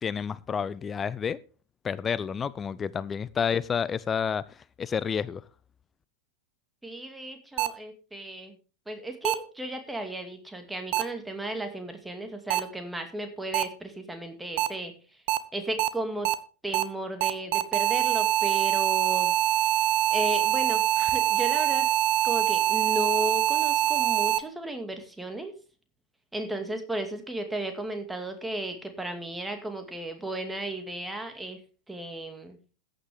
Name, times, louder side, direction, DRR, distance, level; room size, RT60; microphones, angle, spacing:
voice 1, 0.0-1.4 1.8-5.4, left 7 dB, 20° left, 0.5 m, -30 dB
voice 2, 6.8-8.6 8.9-14.9 15.5-16.3 16.6-19.3 20.1-21.9 22.2-25.5 26.3-31.6 31.9-32.6, right 1 dB, 5° right, 2.3 m, -34 dB
sound 1, 7.6-7.7 9.2-9.3 10.9-11.0 12.5-12.6 13.5-13.6 14.6-14.7 15.3-15.4 15.8-15.9 16.2-16.3 16.7-16.8 17.2-24.4, right 13 dB, 45° right, 0.9 m, -24 dB
14.5 x 9.9 x 3.6 m
figure-of-eight pair, 90°, 0 cm